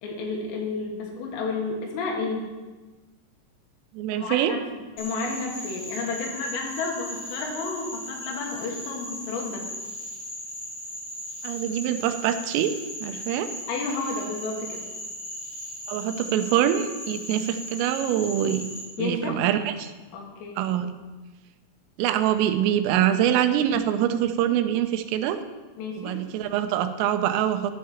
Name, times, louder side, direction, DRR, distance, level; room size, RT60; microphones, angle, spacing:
voice 1, 0.0-2.5 4.1-9.7 13.7-14.8 19.0-19.4 20.1-20.6 25.8-26.2, left 3 dB, 80° left, 0 dB, 4.2 m, -31 dB
voice 2, 3.9-4.5 11.4-12.7 13.0-13.5 15.9-18.7 19.0-19.9 20.6-20.9 22.0-25.4 26.0-27.7, right 10 dB, 85° right, 9 dB, 3.3 m, -24 dB
Frog, 5.0-18.8, left 1 dB, 55° left, 1.3 m, -37 dB
12.5 x 8.5 x 4.3 m, 1.3 s
omnidirectional pair, 5.9 m